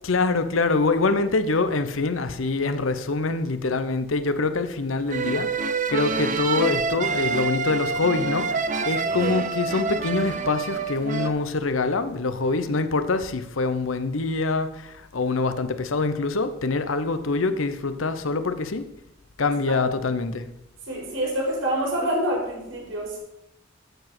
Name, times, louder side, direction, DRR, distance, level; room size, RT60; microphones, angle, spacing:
voice 1, 0.0-18.8 19.4-20.5, left 3 dB, 80° left, 0.8 m, -25 dB
sound 1, 5.1-11.3, right 4 dB, 40° right, 0.7 m, -27 dB
voice 2, 20.9-23.2, right 1 dB, 80° right, 4.2 m, -26 dB
13.0 x 4.8 x 6.0 m
head